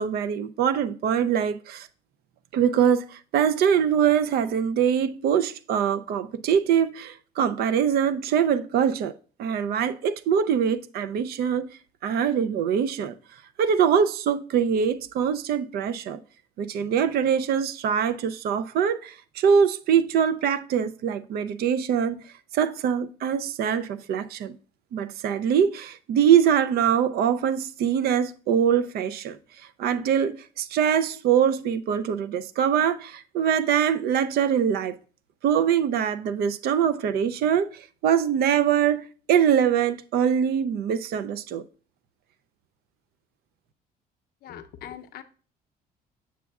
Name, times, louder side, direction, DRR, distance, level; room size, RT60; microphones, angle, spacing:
voice 1, 0.0-1.9 2.5-9.1 9.4-11.7 12.0-13.2 13.6-16.2 16.6-22.2 22.5-24.5 24.9-29.4 29.8-34.9 35.4-41.6, right 8 dB, 65° right, 0.5 m, -23 dB
voice 2, 44.4-45.2, left 10 dB, 65° left, 0.7 m, -41 dB
7.3 x 7.0 x 2.3 m
cardioid pair, 110°, 17 cm